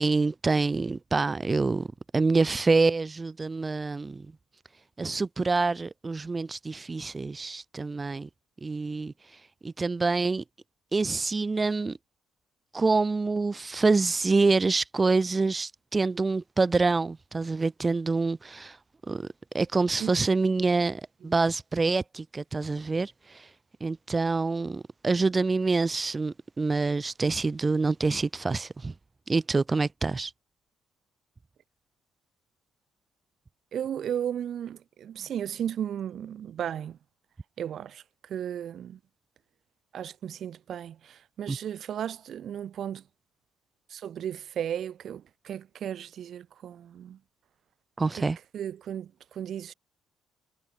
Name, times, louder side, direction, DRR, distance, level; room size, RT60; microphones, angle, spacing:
voice 1, 0.0-1.9 2.1-4.3 5.0-8.3 8.6-9.1 9.6-10.4 10.9-12.0 12.7-18.8 19.1-19.3 19.5-23.5 23.8-28.9 29.3-30.3 41.5-41.6 48.0-48.4, right 3 dB, 25° right, 2.2 m, -26 dB
voice 2, 33.7-37.0 37.6-39.0 39.9-43.0 43.9-47.2 48.2-48.3 48.5-49.7, right 9 dB, 60° right, 2.5 m, -35 dB
cardioid pair, 105°, 0 cm